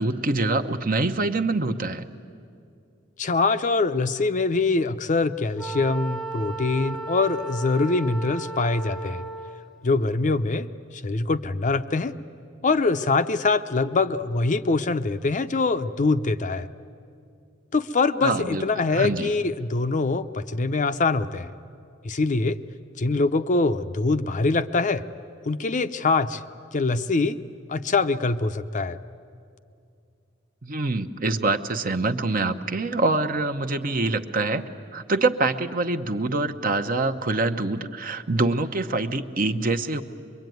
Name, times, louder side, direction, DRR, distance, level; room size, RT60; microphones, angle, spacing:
voice 1, 0.0-2.0 18.2-19.3 30.6-34.6 34.9-40.0, right 3 dB, 45° right, 8 dB, 0.9 m, -25 dB
voice 2, 3.2-9.2 9.8-10.7 11.0-12.1 12.6-16.7 17.7-21.5 22.0-22.6 23.0-25.0 25.5-26.4 26.7-27.4 27.7-29.0, left 3 dB, 40° left, 10 dB, 0.6 m, -23 dB
Wind instrument woodwind instrument, 5.6-9.7, right 3 dB, ahead, 0.9 m, -35 dB
24.5 x 22.5 x 9.3 m, 2.4 s
head